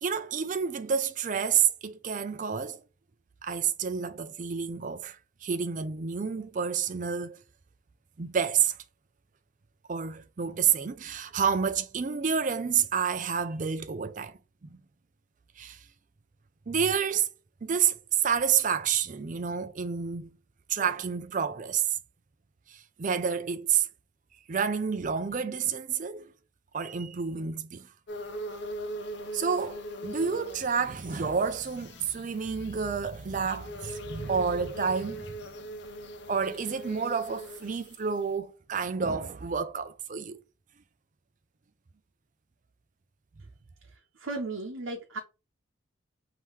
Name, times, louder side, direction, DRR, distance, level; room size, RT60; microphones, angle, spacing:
voice 1, 0.0-2.8 3.4-7.4 8.2-8.8 9.9-14.8 15.6-15.8 16.7-17.3 17.6-20.3 20.7-22.0 22.7-23.9 24.5-26.3 26.7-27.9 29.3-35.3 36.3-40.4, right 7 dB, 40° right, 0.4 m, -29 dB
sound 1, 28.1-38.3, equal, 60° left, 0.7 m, -41 dB
voice 2, 44.1-45.2, right 2 dB, 90° right, 0.8 m, -35 dB
3.7 x 2.8 x 4.6 m
head